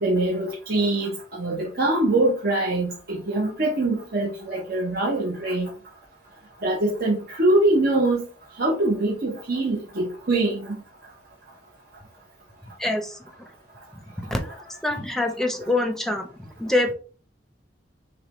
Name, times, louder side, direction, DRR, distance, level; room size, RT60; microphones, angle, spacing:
voice 1, 0.0-5.7 6.6-8.2 8.6-10.8, right 2 dB, 60° right, -4 dB, 0.9 m, -23 dB
voice 2, 12.8-13.2 14.2-14.5 14.8-16.9, left 2 dB, 5° left, 4 dB, 0.7 m, -25 dB
6.3 x 2.3 x 3.0 m, 0.38 s
head